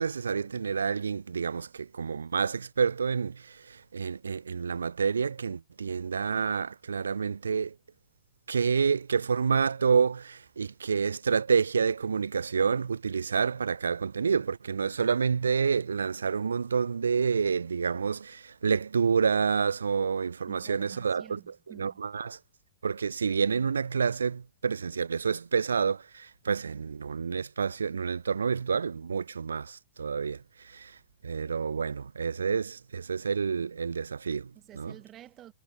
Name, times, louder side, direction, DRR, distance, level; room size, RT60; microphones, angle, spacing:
voice 1, 0.0-7.7 8.5-21.4 21.8-22.4 22.8-31.0 31.2-34.9, right 6 dB, 90° right, 0.7 m, -28 dB
voice 2, 20.5-22.0 34.5-35.5, right 12 dB, 30° right, 7.7 m, -50 dB
hypercardioid pair, 120°, 0 cm